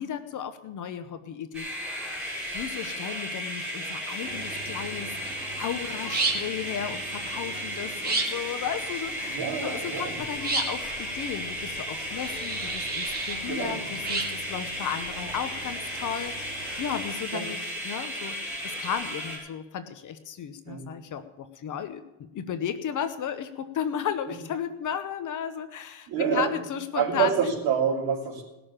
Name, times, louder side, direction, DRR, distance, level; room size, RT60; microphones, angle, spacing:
voice 1, 0.0-1.7 2.5-22.0 22.3-27.5, left 8 dB, 40° left, 10 dB, 0.9 m, -34 dB
sound 1, 1.5-19.4, equal, ahead, 6.5 m, -34 dB
sound 2, 4.2-17.1, right 3 dB, 20° right, 2.5 m, -35 dB
voice 2, 9.2-10.2 13.5-13.9 17.3-17.5 20.7-20.9 24.3-24.4 26.1-26.5 26.9-28.4, right 7 dB, 50° right, 0 dB, 4.2 m, -27 dB
18.5 x 6.9 x 8.8 m, 1.0 s
cardioid pair, 160°, 48 cm